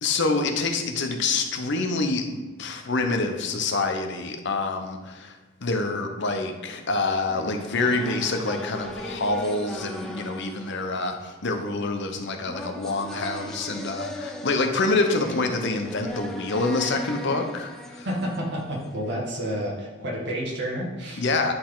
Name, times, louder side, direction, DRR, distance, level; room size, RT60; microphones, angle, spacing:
voice 1, 0.0-5.4 5.6-18.1 21.2-21.5, left 3 dB, 60° left, 5 dB, 0.8 m, -26 dB
sound 1, 7.3-19.2, left 1 dB, 5° left, 0.6 m, -38 dB
voice 2, 18.0-21.3, equal, 55° right, -4 dB, 2.1 m, -30 dB
10.5 x 4.1 x 3.9 m, 1.2 s
head